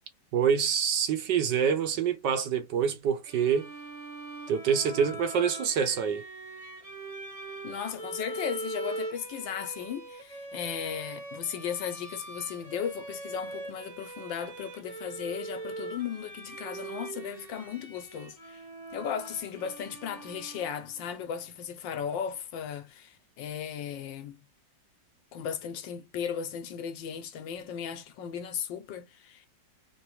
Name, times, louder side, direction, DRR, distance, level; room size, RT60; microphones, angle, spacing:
voice 1, 0.3-3.7 4.5-6.2, right 7 dB, 70° right, 1.5 m, -26 dB
Bowed string instrument, 3.3-21.1, right 2 dB, 25° right, 0.8 m, -42 dB
voice 2, 7.6-18.6 18.9-24.4 25.3-29.5, left 8 dB, 80° left, 1.5 m, -36 dB
3.7 x 3.0 x 3.0 m
omnidirectional pair, 2.0 m